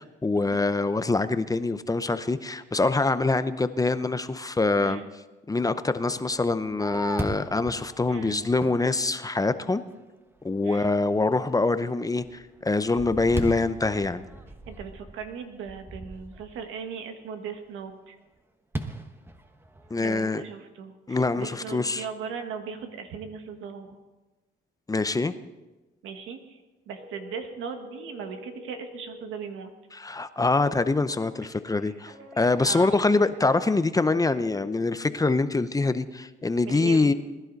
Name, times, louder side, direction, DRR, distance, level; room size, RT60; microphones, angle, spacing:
voice 1, 0.0-5.0 5.5-9.8 10.4-14.2 19.9-20.4 21.1-22.0 24.9-25.3 29.9-37.1, left 3 dB, 20° left, 12 dB, 0.6 m, -25 dB
Fireworks, 6.3-9.8 10.4-10.5 11.0-11.4 11.8-16.7 18.7-20.1, right 1 dB, 10° right, 1.2 m, -38 dB
voice 2, 8.1-8.4 10.6-10.9 14.7-18.2 20.0-24.0 26.0-26.6 26.9-29.7 32.6-33.0 36.6-37.1, right 6 dB, 90° right, 6 dB, 1.6 m, -38 dB
sound 1, 27.0-29.2 31.4-33.8 34.2-34.5, left 1 dB, 55° right, 3.8 m, -47 dB
20.5 x 11.5 x 4.0 m, 1.1 s
cardioid pair, 90°, 20 cm